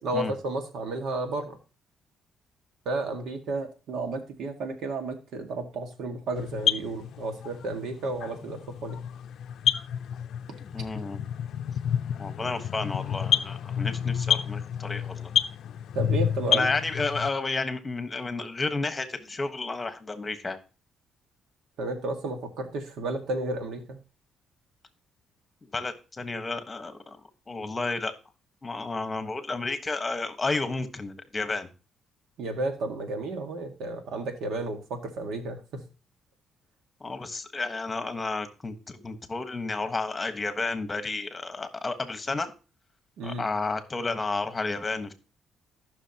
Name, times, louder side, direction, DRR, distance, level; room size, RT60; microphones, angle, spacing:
voice 1, 0.0-1.6 2.9-9.0 15.9-16.7 21.8-24.0 32.4-35.9 43.2-43.5, right 2 dB, 80° right, 5 dB, 1.8 m, -32 dB
sound 1, 6.4-17.3, left 9 dB, 70° left, 0.5 m, -29 dB
voice 2, 10.6-11.2 12.2-15.3 16.5-20.6 25.6-27.2 27.5-28.1 28.6-31.7 37.0-42.5 43.2-45.1, left 3 dB, 25° left, 9 dB, 1.3 m, -31 dB
14.5 x 6.1 x 2.9 m, 0.34 s
cardioid pair, 90°, 0 cm